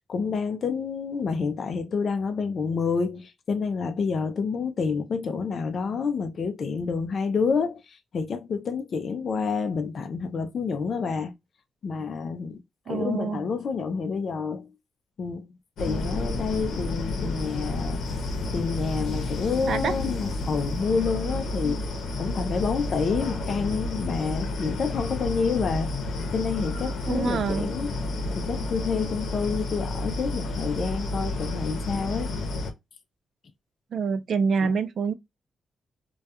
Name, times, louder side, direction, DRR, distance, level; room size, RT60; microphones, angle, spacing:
voice 1, 0.1-11.3 11.8-12.6 12.9-14.7 15.2-15.5 15.8-18.0 18.5-21.9 22.2-25.9 26.3-27.9 28.3-32.3 34.6-34.7, left 5 dB, 50° left, 0.4 m, -28 dB
voice 2, 12.9-13.4 19.7-20.0 21.6-21.8 27.1-27.7 33.9-35.1, right 5 dB, 60° right, 0.3 m, -26 dB
sound 1, 15.8-32.7, left 2 dB, 75° left, 0.7 m, -31 dB
2.2 x 2.2 x 2.7 m
wide cardioid pair, 140°, 0 cm